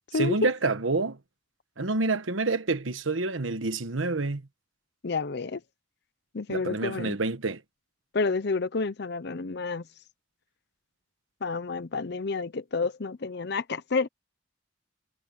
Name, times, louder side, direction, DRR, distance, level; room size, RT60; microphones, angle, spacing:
voice 1, 0.2-1.2 1.8-4.4 6.5-7.6, right 3 dB, 85° right, 1.3 m, -28 dB
voice 2, 5.0-5.6 6.3-7.2 8.1-9.9 11.4-14.1, left 4 dB, 55° left, 0.7 m, -29 dB
head